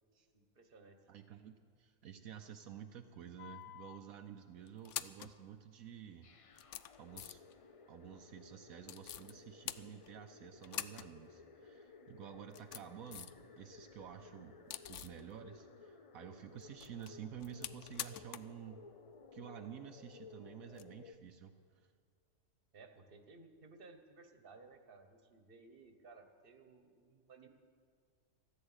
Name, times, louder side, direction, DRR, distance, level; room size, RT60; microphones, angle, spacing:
voice 1, 0.3-1.0 22.7-27.5, right 3 dB, 40° right, 6 dB, 1.4 m, -58 dB
voice 2, 1.1-6.3 7.0-7.4 7.8-18.8 19.3-21.9, right 9 dB, 75° right, 6 dB, 1.1 m, -51 dB
Auto Keys In Out Lock, 3.4-4.0 4.7-5.4 6.1-6.2 6.5-7.6 8.8-9.3 9.7-10.3 10.6-11.1 11.4-11.5 12.3-13.4 13.8-15.2 16.6-18.6 18.8-18.9 20.7-20.8, left 12 dB, 70° left, 0.8 m, -46 dB
sound 1, 6.2-21.1, left 4 dB, 50° left, 0.4 m, -57 dB
15.0 x 12.0 x 8.1 m, 2.1 s
omnidirectional pair, 1.5 m